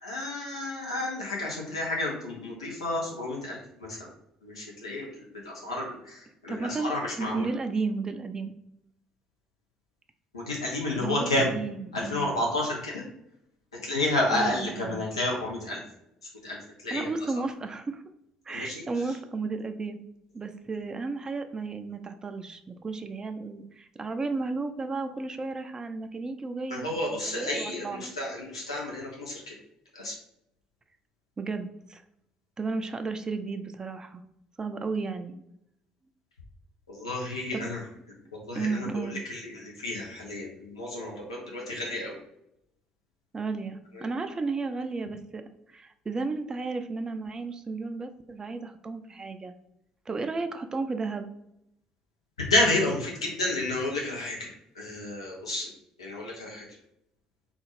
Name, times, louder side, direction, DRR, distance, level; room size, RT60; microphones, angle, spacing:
voice 1, 0.0-4.1 4.4-7.5 10.3-11.5 11.9-13.0 13.8-15.8 16.4-16.6 16.8-17.1 18.5-18.8 26.7-29.5 29.9-30.1 36.9-37.8 38.3-42.2 44.0-44.1 52.5-54.5 54.8-55.7 56.0-56.6, left 2 dB, 85° left, -2 dB, 0.7 m, -31 dB
voice 2, 6.5-8.5 11.0-12.4 14.3-15.1 16.9-18.0 18.5-20.0 20.3-28.1 31.4-32.0 32.6-34.2 34.6-35.4 37.2-37.7 38.5-39.2 43.3-49.5 50.1-51.3, right 3 dB, 25° right, 7 dB, 0.4 m, -33 dB
3.7 x 2.4 x 3.1 m, 0.81 s
figure-of-eight pair, 50°, 3 cm